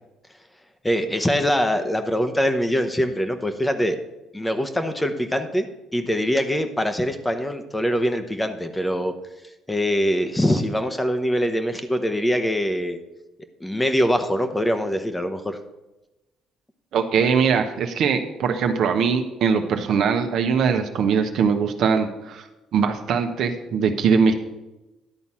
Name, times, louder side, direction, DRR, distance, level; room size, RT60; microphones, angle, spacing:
voice 1, 0.8-4.0 4.3-5.7 5.9-9.1 9.7-13.0 13.6-15.6, equal, 10° left, 8 dB, 1.0 m, -23 dB
voice 2, 16.9-22.4 22.7-24.3, right 6 dB, 70° right, 5 dB, 1.0 m, -21 dB
11.0 x 4.1 x 7.3 m, 1.0 s
supercardioid pair, 70°, 0 cm